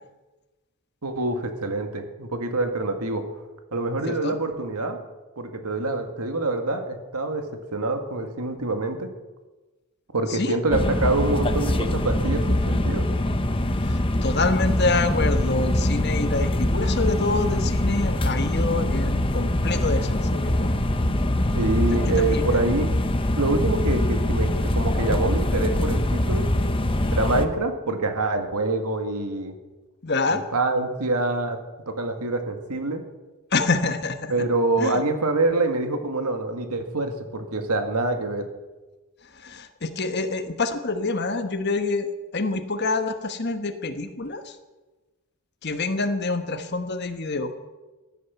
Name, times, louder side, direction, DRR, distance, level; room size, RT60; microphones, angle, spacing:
voice 1, 1.0-3.2 3.7-5.0 5.4-7.5 7.7-9.1 10.1-13.1 21.5-23.0 23.4-26.5 27.1-29.5 30.3-31.6 31.9-33.0 34.3-38.5, right 2 dB, 90° right, 6 dB, 2.0 m, -25 dB
sound 1, 10.7-27.5, left 1 dB, 25° left, 0.9 m, -23 dB
voice 2, 13.8-20.7 22.2-22.6 30.0-30.4 33.5-34.3 34.8-35.0 39.4-42.1 42.3-44.5 45.6-47.5, left 3 dB, 50° left, 8 dB, 1.3 m, -26 dB
15.5 x 11.5 x 7.0 m, 1.2 s
head